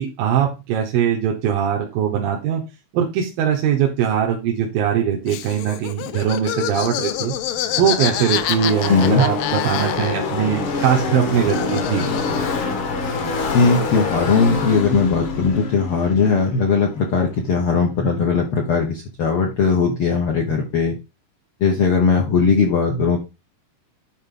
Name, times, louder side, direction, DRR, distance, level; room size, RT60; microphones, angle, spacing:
voice 1, 0.0-2.6 2.9-7.3 7.8-12.1, right 9 dB, 90° right, 0 dB, 2.9 m, -21 dB
Laughter, 5.3-10.4 10.7-12.7, left 12 dB, 85° left, 2.4 m, -27 dB
Car passing by / Race car auto racing, 7.2-17.6, left 4 dB, 50° left, 1.7 m, -26 dB
voice 2, 8.9-9.2 13.5-20.9 21.6-23.2, left 5 dB, 70° left, 1 dB, 1.3 m, -18 dB
10.5 x 4.1 x 3.8 m, 0.27 s
omnidirectional pair, 4.0 m